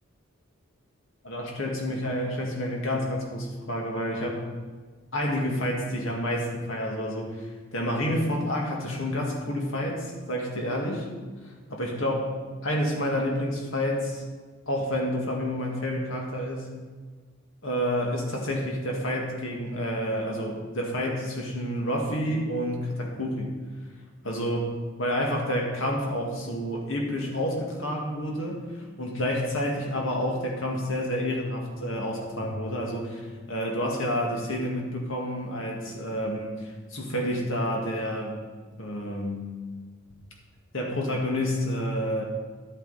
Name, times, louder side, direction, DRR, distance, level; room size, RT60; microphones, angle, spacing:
voice 1, 1.2-4.4 5.1-11.1 11.4-12.3 12.6-14.2 14.7-16.7 17.6-23.6 24.2-24.7 25.0-38.4 38.8-39.5 40.7-42.2, equal, 70° left, 0 dB, 2.0 m, -29 dB
12.0 x 8.3 x 4.2 m, 1.4 s
head